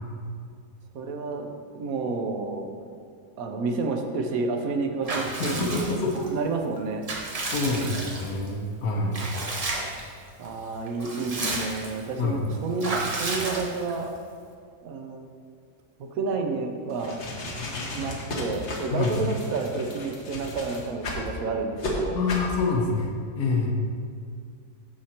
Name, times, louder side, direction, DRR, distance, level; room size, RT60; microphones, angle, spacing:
voice 1, 0.9-1.5 1.7-2.7 3.4-6.0 6.3-7.1 10.4-14.1 14.8-15.3 16.0-17.2 17.9-22.2, right 4 dB, 65° right, 4 dB, 1.1 m, -30 dB
Water / Bathtub (filling or washing) / Liquid, 5.1-6.3 6.8-8.5 9.1-10.1 10.4-10.5 10.9-12.0 12.8-14.1, right 2 dB, 35° right, 0.6 m, -32 dB
voice 2, 5.4-6.2 7.5-9.2 12.2-12.5 18.9-19.2 22.1-23.7, left 3 dB, 75° left, 1 dB, 1.3 m, -27 dB
sound 1, 16.9-21.3 21.8-21.9 22.3-22.5, left 2 dB, 50° left, 1.3 m, -34 dB
13.0 x 4.8 x 2.9 m, 2.2 s
omnidirectional pair, 1.7 m